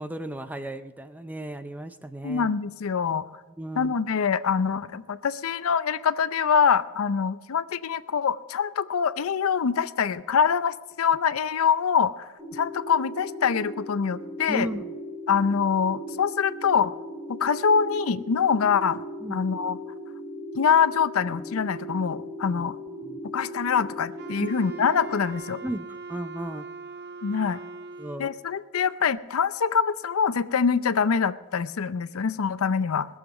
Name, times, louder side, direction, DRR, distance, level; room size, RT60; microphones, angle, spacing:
voice 1, 0.0-2.5 3.6-4.0 14.5-15.0 19.2-19.4 22.5-22.6 23.0-23.2 24.4-24.5 25.6-26.7 27.3-27.4 28.0-28.3, right 1 dB, 5° right, 11 dB, 0.4 m, -35 dB
voice 2, 2.2-3.2 3.8-14.7 15.3-16.9 17.4-19.0 19.3-19.8 20.5-22.8 23.3-25.6 27.2-27.6 28.2-33.1, left 6 dB, 80° left, 15 dB, 0.5 m, -24 dB
sound 1, 12.4-25.3, equal, 25° right, 1.8 m, -38 dB
Wind instrument woodwind instrument, 24.2-28.5, right 4 dB, 50° right, 0.7 m, -40 dB
20.5 x 7.3 x 5.9 m, 1.3 s
head